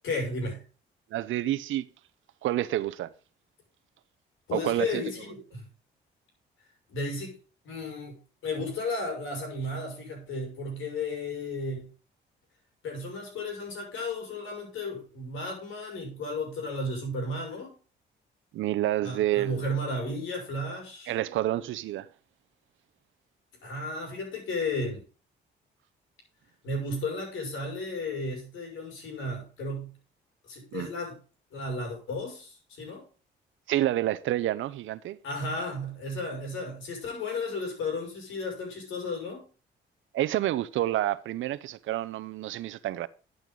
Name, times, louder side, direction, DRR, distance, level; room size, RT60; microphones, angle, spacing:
voice 1, 0.0-0.6 4.5-5.6 6.9-7.4 7.6-8.2 8.4-11.9 12.8-17.7 19.0-21.1 23.6-25.0 26.6-29.9 30.4-31.2 31.5-33.0 35.2-39.4, left 2 dB, 80° left, 6.3 m, -34 dB
voice 2, 1.1-1.8 2.4-3.1 4.5-5.0 18.5-19.6 21.1-22.1 30.7-30.9 33.7-35.2 40.1-43.1, right 14 dB, 80° right, 0.8 m, -28 dB
12.0 x 7.9 x 3.9 m
cardioid pair, 90°, 20 cm